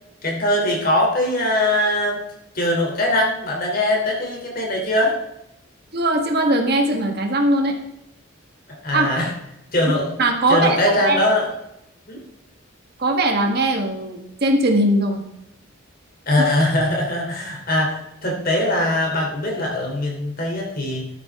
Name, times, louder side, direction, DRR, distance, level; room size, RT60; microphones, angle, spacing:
voice 1, 0.2-2.2 2.5-5.1 8.8-9.3 9.7-10.1 10.5-11.5 12.1-12.2 16.3-21.1, left 1 dB, 45° left, 0 dB, 3.3 m, -21 dB
voice 2, 5.9-7.7 8.9-9.2 10.2-10.8 11.0-11.2 13.0-15.2, right 1 dB, 50° right, 3 dB, 1.6 m, -20 dB
12.5 x 9.4 x 3.7 m, 0.84 s
head